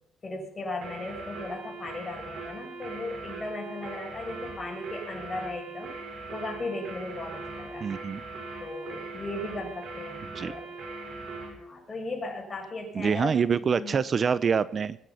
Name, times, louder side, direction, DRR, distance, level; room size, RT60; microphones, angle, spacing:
voice 1, 0.2-5.9 6.3-8.0 8.6-10.7 11.6-13.4 13.8-14.0, left 2 dB, 30° left, 1 dB, 6.5 m, -37 dB
sound 1, 0.8-11.6, right 3 dB, 65° right, 5.4 m, -40 dB
voice 2, 7.8-8.2 10.4-10.5 12.9-15.0, right 6 dB, 45° right, 17 dB, 0.6 m, -25 dB
22.0 x 10.5 x 5.7 m, 0.75 s
cardioid pair, 90°, 0 cm